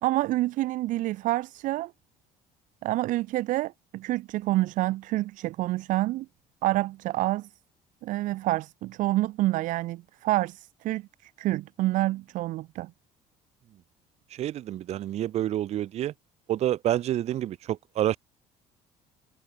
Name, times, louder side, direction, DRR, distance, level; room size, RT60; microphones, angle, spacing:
voice 1, 0.0-1.9 2.8-6.3 6.6-7.5 8.0-12.9, right 17 dB, 70° right, 5.0 m, -28 dB
voice 2, 14.3-16.1 16.5-18.2, right 12 dB, 50° right, 5.3 m, -28 dB
cardioid pair, 155°, 14 cm